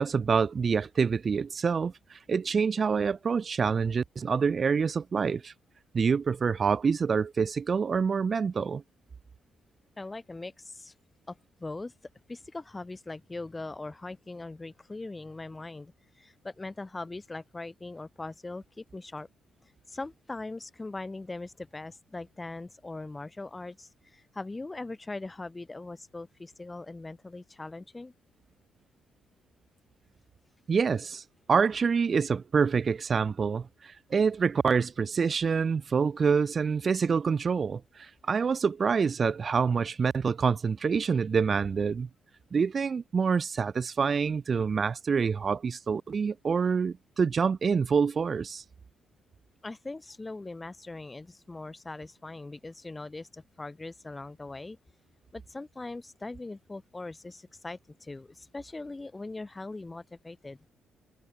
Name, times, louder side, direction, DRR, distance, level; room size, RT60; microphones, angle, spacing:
voice 1, 0.0-5.5 5.9-8.8 30.7-31.2 31.5-42.1 42.5-48.6, right 5 dB, 40° right, 0.7 m, -26 dB
voice 2, 10.0-10.9 11.3-11.9 12.3-19.3 19.9-28.1 49.6-54.8 55.3-60.7, left 2 dB, 20° left, 2.2 m, -41 dB
cardioid pair, 90°, 0 cm